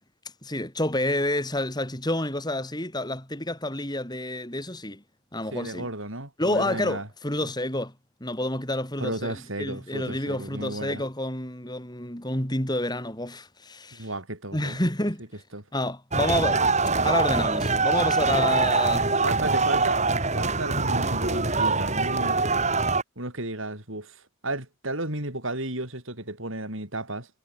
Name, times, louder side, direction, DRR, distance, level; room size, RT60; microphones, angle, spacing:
voice 1, 0.4-5.0 5.3-5.9 6.4-7.9 8.2-14.1 14.5-15.2 15.7-16.7 17.0-19.1, left 1 dB, 20° left, 4.6 m, -29 dB
voice 2, 5.5-7.1 7.4-7.5 9.0-11.0 13.9-14.8 15.5-15.6 19.2-20.0 20.3-22.4 23.2-27.3, right 2 dB, 65° right, 7.3 m, -33 dB
sound 1, 16.1-23.0, right 3 dB, 30° right, 5.8 m, -23 dB
head